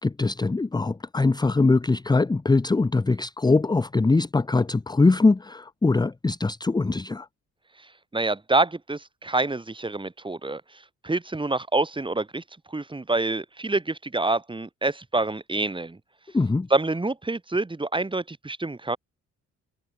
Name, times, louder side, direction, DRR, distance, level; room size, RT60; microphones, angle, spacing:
voice 1, 0.0-7.3 16.3-16.7, left 3 dB, 15° left, 0.8 m, -22 dB
voice 2, 8.1-10.6 11.0-16.0 16.7-19.0, right 2 dB, 15° right, 3.1 m, -27 dB
open air
cardioid pair, 90°, 30 cm